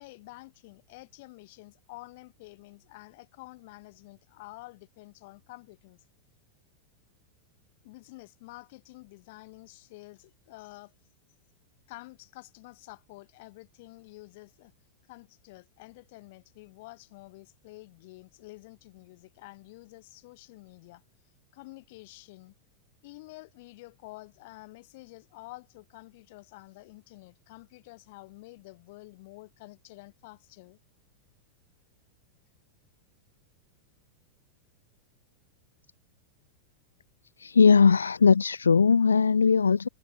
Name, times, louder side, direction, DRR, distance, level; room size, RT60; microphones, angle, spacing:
voice 1, 0.0-6.0 7.8-10.9 11.9-14.7 15.1-21.0 21.5-22.5 23.0-30.8, left 22 dB, 50° left, 3.6 m, -49 dB
voice 2, 37.4-39.9, left 5 dB, 75° left, 0.3 m, -20 dB
figure-of-eight pair, 90°, 0 cm